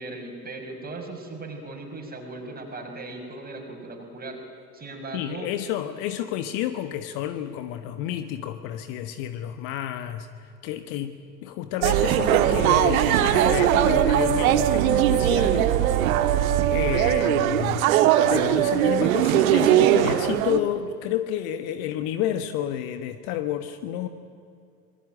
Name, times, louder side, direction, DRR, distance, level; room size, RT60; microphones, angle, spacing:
voice 1, 0.0-4.4 4.7-5.5, right 2 dB, 20° right, 2 dB, 5.9 m, -38 dB
voice 2, 5.1-17.9 18.3-24.1, left 11 dB, 45° left, 10 dB, 1.4 m, -30 dB
sound 1, 11.8-20.6, right 11 dB, 55° right, 1.6 m, -20 dB
26.5 x 22.0 x 9.0 m, 2.4 s
figure-of-eight pair, 85°, 50 cm